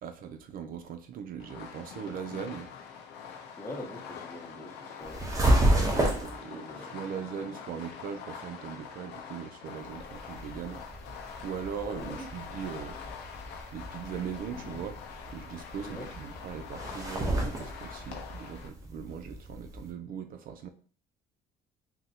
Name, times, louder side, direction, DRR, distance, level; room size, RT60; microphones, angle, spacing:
voice 1, 0.0-2.7 6.0-10.8 11.4-13.0 13.7-15.0 15.3-20.7, right 7 dB, 60° right, 0.4 m, -40 dB
Fireworks, 1.4-18.7, left 6 dB, 80° left, 0.6 m, -45 dB
voice 2, 3.6-7.2 12.0-12.3 15.8-16.1, left 1 dB, 15° left, 0.7 m, -44 dB
sound 1, 5.0-6.4 9.8-19.9, right 1 dB, 20° right, 0.8 m, -31 dB
3.8 x 2.1 x 2.8 m
cardioid pair, 110°, 17 cm